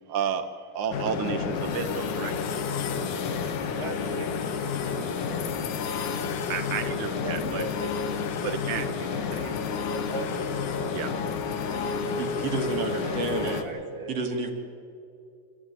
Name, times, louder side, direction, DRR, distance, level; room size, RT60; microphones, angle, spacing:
voice 1, 0.1-2.3 6.5-7.6 8.4-8.9 10.9-11.1, right 8 dB, 90° right, 7 dB, 1.2 m, -31 dB
sound 1, 0.9-13.6, left 5 dB, 65° left, 2.6 m, -30 dB
voice 2, 3.7-5.6 7.2-9.6 9.9-11.0 11.5-14.1, right 2 dB, 10° right, 0 dB, 2.0 m, -40 dB
voice 3, 12.2-13.7 14.1-14.5, right 3 dB, 50° right, 3 dB, 2.7 m, -30 dB
26.5 x 14.0 x 9.6 m, 2.5 s
omnidirectional pair, 4.0 m